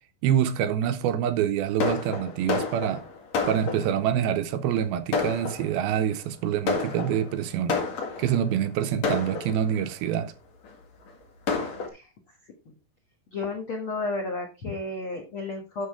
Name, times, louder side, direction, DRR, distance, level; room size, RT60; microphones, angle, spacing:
voice 1, 0.2-3.0 3.5-7.8 8.2-10.3, right 9 dB, 80° right, 2.5 m, -26 dB
Fireworks, 1.8-4.1 4.7-4.8 5.1-6.0 6.7-8.4 9.0-9.9 10.6-10.7 11.1-11.2 11.5-11.9, left 4 dB, 50° left, 2.6 m, -30 dB
voice 2, 13.3-15.9, left 3 dB, 70° left, 1.2 m, -32 dB
11.0 x 6.6 x 3.5 m
omnidirectional pair, 4.5 m